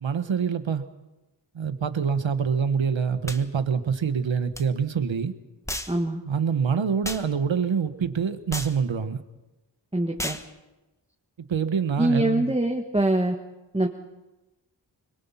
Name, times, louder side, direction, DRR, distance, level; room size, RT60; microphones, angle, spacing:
voice 1, 0.0-0.9 1.5-5.3 6.2-9.2 11.5-12.5, right 6 dB, 90° right, 10 dB, 1.4 m, -25 dB
sound 1, 3.3-3.4 4.5-4.7 5.7-6.0 7.0-7.3 8.5-8.8 10.2-10.5, left 1 dB, 5° left, 1.3 m, -33 dB
voice 2, 5.9-6.2 9.9-10.4 12.0-13.4 13.7-13.9, right 1 dB, 15° right, 2 dB, 1.6 m, -23 dB
25.0 x 22.5 x 5.7 m, 1.1 s
wide cardioid pair, 80°, 44 cm